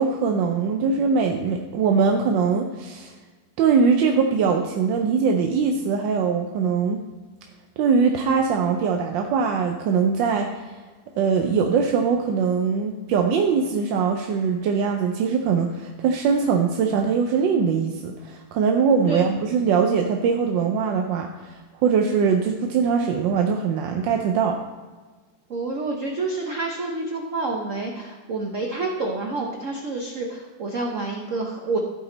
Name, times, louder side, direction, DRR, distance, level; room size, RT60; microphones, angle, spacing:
voice 1, 0.0-3.1 3.6-7.0 7.8-10.7 11.2-24.6, right 5 dB, 70° right, 3 dB, 1.2 m, -22 dB
voice 2, 25.5-31.8, right 3 dB, 50° right, 0 dB, 0.9 m, -28 dB
15.0 x 5.1 x 3.9 m, 1.3 s
omnidirectional pair, 2.4 m